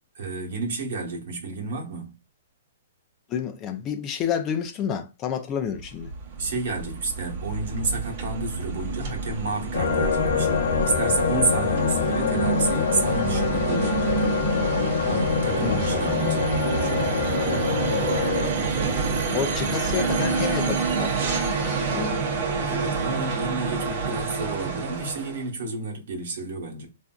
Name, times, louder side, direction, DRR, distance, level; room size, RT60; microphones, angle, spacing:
voice 1, 0.1-2.1 6.4-10.5 10.8-14.5 15.1-17.2 22.6-26.9, right 3 dB, 70° right, 1.1 m, -30 dB
voice 2, 3.3-6.1 15.6-15.8 19.2-22.2 22.6-22.7, left 8 dB, 25° left, 0.4 m, -30 dB
sound 1, 5.6-25.5, right 4 dB, 45° right, 0.7 m, -28 dB
sound 2, 9.7-18.5, left 6 dB, 85° left, 0.7 m, -25 dB
3.4 x 2.5 x 2.3 m
hypercardioid pair, 150°, 0 cm